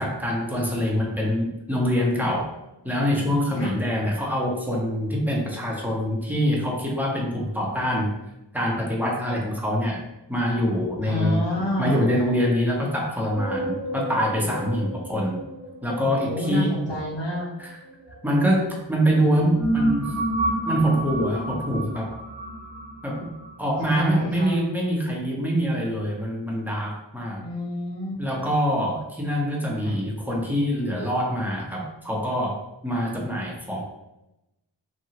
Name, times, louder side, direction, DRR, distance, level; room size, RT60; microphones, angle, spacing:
voice 1, 0.0-2.5 2.8-8.1 8.5-10.0 10.3-11.4 11.8-15.4 15.8-16.7 17.6-17.7 18.2-20.1 20.7-22.1 23.0-23.3 23.6-27.4 28.2-33.8, equal, 5° right, -3 dB, 0.9 m, -25 dB
voice 2, 11.0-12.0 16.2-17.4 23.9-24.6 27.4-28.3 29.8-30.0, left 1 dB, 70° left, -5 dB, 1.4 m, -28 dB
sound 1, 13.3-18.6 19.2-24.2, right 1 dB, 40° right, 1.2 m, -30 dB
2.9 x 2.6 x 2.8 m, 0.92 s
cardioid pair, 50°, 45 cm